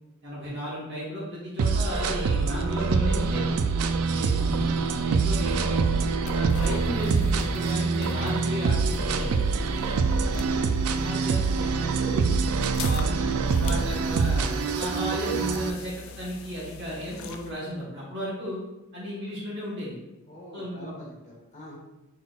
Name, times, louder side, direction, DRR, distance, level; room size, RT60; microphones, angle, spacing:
voice 1, 0.2-3.5 4.0-5.9 6.3-9.4 11.0-12.3 12.8-18.6 18.9-20.0 20.5-21.0, equal, 50° right, -6 dB, 1.2 m, -34 dB
sound 1, 1.6-15.7, right 4 dB, 80° right, 0.3 m, -25 dB
sound 2, 4.2-17.5, left 4 dB, 65° left, 0.4 m, -42 dB
voice 2, 9.8-10.1 20.3-21.8, equal, 30° left, -3 dB, 1.1 m, -44 dB
4.4 x 3.9 x 2.3 m, 0.99 s
head